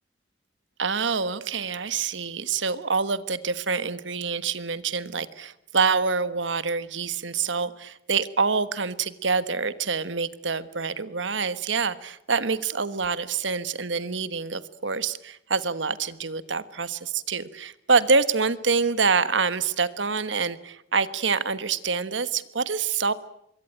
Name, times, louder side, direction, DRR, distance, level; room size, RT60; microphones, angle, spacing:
voice 1, 0.8-23.1, right 5 dB, 80° right, 14 dB, 1.4 m, -26 dB
25.5 x 22.5 x 9.0 m, 0.77 s
head